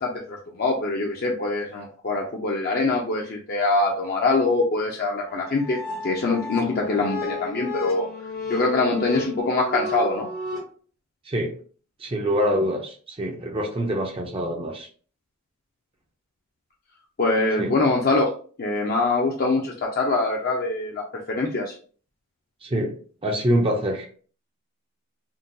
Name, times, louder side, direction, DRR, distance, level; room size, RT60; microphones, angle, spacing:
voice 1, 0.0-5.8 6.0-8.1 8.5-10.3 17.2-18.3 18.6-21.0 21.3-21.7, left 3 dB, 45° left, -1 dB, 0.4 m, -24 dB
sound 1, 5.3-10.6, left 2 dB, 70° left, 1.0 m, -33 dB
voice 2, 12.0-14.9 17.6-17.7 22.6-23.0 23.2-24.1, equal, 25° right, 2 dB, 0.4 m, -25 dB
3.7 x 2.2 x 2.6 m, 0.43 s
head